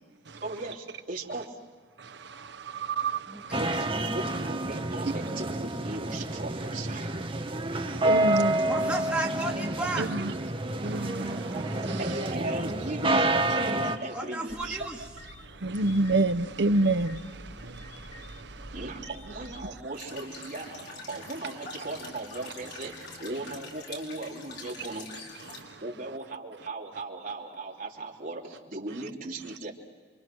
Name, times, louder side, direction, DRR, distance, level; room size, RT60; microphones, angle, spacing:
voice 1, 0.4-1.6 3.5-3.8 4.1-7.2 12.0-14.9 18.7-25.2 25.8-29.7, right 2 dB, 50° right, 3.4 m, -38 dB
voice 2, 2.0-3.6 7.7-9.2 10.0-10.3 10.8-12.0 15.4-18.8 25.5-25.8, right 2 dB, 70° right, 0.8 m, -30 dB
voice 3, 3.3-4.3 8.7-10.1 11.0-11.4 14.1-15.0, right 2 dB, 5° right, 2.0 m, -34 dB
sound 1, 3.5-14.0, right 1 dB, 30° right, 1.3 m, -29 dB
sound 2, 14.5-19.8, equal, 45° left, 1.9 m, -47 dB
sound 3, 19.9-25.6, left 3 dB, 65° left, 5.3 m, -44 dB
28.5 x 25.0 x 6.2 m
head